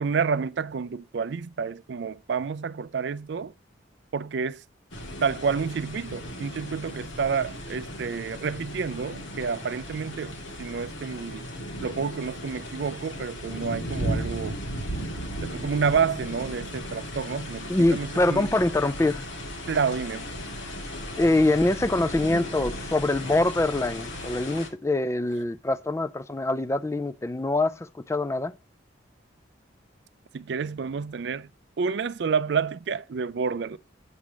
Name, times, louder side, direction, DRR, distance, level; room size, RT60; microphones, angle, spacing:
voice 1, 0.0-3.5 4.1-4.6 5.2-11.5 11.8-14.6 15.4-18.5 19.7-20.3 30.3-31.5 31.8-33.8, right 5 dB, 65° right, 0.4 m, -29 dB
sound 1, 4.9-24.7, equal, 80° left, 2.1 m, -36 dB
voice 2, 17.7-19.3 21.2-28.5, left 2 dB, 15° left, 0.3 m, -24 dB
8.4 x 3.4 x 6.2 m
head